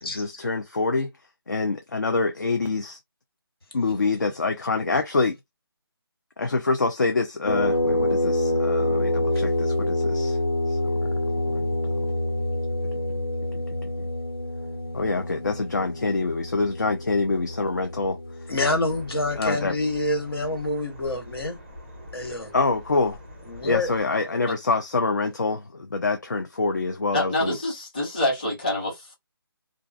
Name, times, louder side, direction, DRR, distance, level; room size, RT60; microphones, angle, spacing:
voice 1, 0.0-1.1 1.5-3.0 3.7-5.4 6.4-10.4 10.7-10.8 11.5-11.7 14.9-18.2 19.3-19.7 22.5-23.2 23.6-27.6, left 3 dB, 50° left, 0.5 m, -26 dB
sound 1, 7.5-20.6, left 1 dB, 85° left, 1.5 m, -27 dB
voice 2, 18.5-21.6 22.1-22.5 23.5-23.9, left 2 dB, 70° left, 1.5 m, -27 dB
sound 2, 18.5-24.0, left 1 dB, 10° right, 0.5 m, -44 dB
voice 3, 27.1-29.1, left 1 dB, 20° left, 1.0 m, -26 dB
2.4 x 2.3 x 2.5 m
hypercardioid pair, 180°, 13 cm